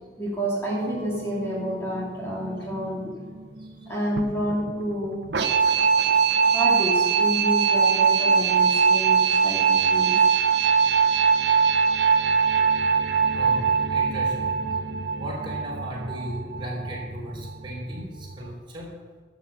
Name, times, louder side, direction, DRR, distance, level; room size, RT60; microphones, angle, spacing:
voice 1, 0.2-3.2 3.9-5.2 6.5-10.1, equal, 15° left, -5 dB, 2.6 m, -29 dB
sound 1, 0.7-18.5, right 6 dB, 65° right, 1.0 m, -23 dB
voice 2, 13.3-14.6 15.2-18.9, equal, 25° right, -3 dB, 3.5 m, -36 dB
12.5 x 7.6 x 7.1 m, 1.5 s
head